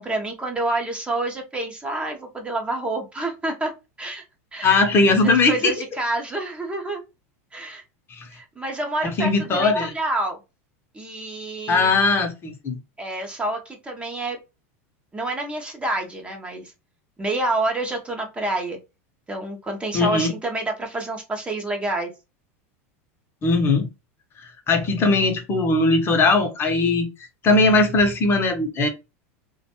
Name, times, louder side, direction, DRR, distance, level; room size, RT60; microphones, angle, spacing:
voice 1, 0.0-3.7 4.0-4.2 4.5-4.7 5.1-7.0 7.5-7.8 8.3-10.4 10.9-12.0 13.0-14.4 15.1-16.7 17.2-18.8 19.3-22.1, right 2 dB, 15° right, 2 dB, 0.6 m, -28 dB
voice 2, 4.6-5.7 8.1-8.2 9.0-9.9 11.7-12.8 19.9-20.3 23.4-23.9 24.7-27.1 27.4-28.9, left 3 dB, 30° left, 4 dB, 0.7 m, -19 dB
2.4 x 2.2 x 2.8 m, 0.26 s
supercardioid pair, 115°, 8 cm